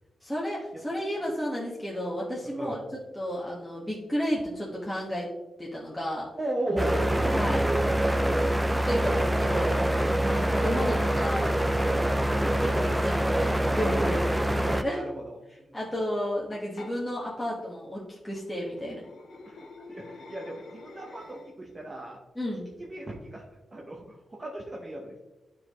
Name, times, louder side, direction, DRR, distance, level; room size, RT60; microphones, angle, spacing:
voice 1, 0.2-2.8 3.1-5.3 5.6-6.3 7.3-7.7 8.7-9.8 10.2-11.5 12.4-15.0 15.7-19.0 22.3-22.7, equal, 5° left, -6 dB, 1.4 m, -32 dB
voice 2, 6.4-7.5 7.8-8.3 11.9-12.2 14.0-14.2 14.9-15.4 15.6-15.8 19.5-19.6 19.9-22.2 22.9-25.2, right 1 dB, 30° right, -1 dB, 1.0 m, -35 dB
sound 1, 6.8-14.8, right 1 dB, 10° right, 0.4 m, -25 dB
sound 2, 16.5-16.9 18.6-21.7, left 3 dB, 70° left, 1.0 m, -47 dB
10.5 x 4.5 x 3.0 m, 1.0 s
wide cardioid pair, 110°, 0 cm